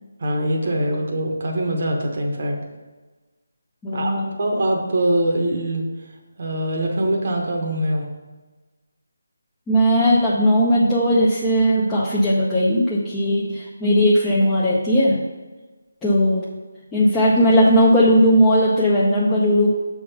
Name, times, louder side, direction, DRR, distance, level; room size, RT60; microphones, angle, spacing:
voice 1, 0.2-2.6 3.9-5.9 6.4-8.1, right 1 dB, 45° right, 1 dB, 0.9 m, -23 dB
voice 2, 3.8-4.2 9.7-15.2 16.0-16.4 16.9-19.7, equal, 10° left, -8 dB, 0.6 m, -17 dB
6.7 x 3.5 x 5.5 m, 1.3 s
figure-of-eight pair, 160°, 0 cm